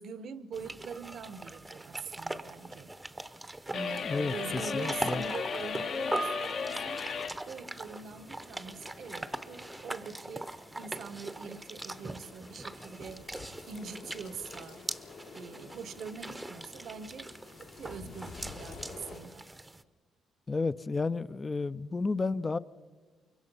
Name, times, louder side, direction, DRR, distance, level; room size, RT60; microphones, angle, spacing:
voice 1, 0.0-2.9 3.7-7.0 7.5-13.3 13.7-14.9 15.3-17.3 17.8-19.5, right 6 dB, 65° right, 1.0 m, -43 dB
sound 1, 0.5-19.8, right 2 dB, 15° right, 0.8 m, -41 dB
sound 2, 3.7-7.4, left 6 dB, 60° left, 1.2 m, -35 dB
voice 2, 4.0-5.2 20.5-22.6, left 3 dB, 25° left, 0.6 m, -32 dB
Storm Eunice, 4.4-19.2, left 4 dB, 80° left, 3.4 m, -51 dB
24.0 x 22.5 x 5.5 m
cardioid pair, 90°, 0 cm